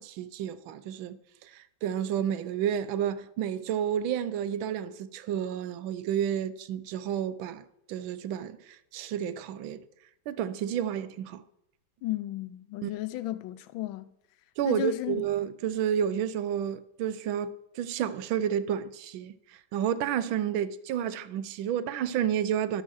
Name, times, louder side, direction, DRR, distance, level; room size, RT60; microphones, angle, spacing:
voice 1, 0.0-9.8 10.3-11.4 12.8-12.9 14.6-22.8, right 9 dB, 90° right, 1.4 m, -31 dB
voice 2, 12.0-14.1 14.6-15.3, left 15 dB, 85° left, 1.4 m, -34 dB
12.5 x 5.4 x 6.2 m
omnidirectional pair, 2.1 m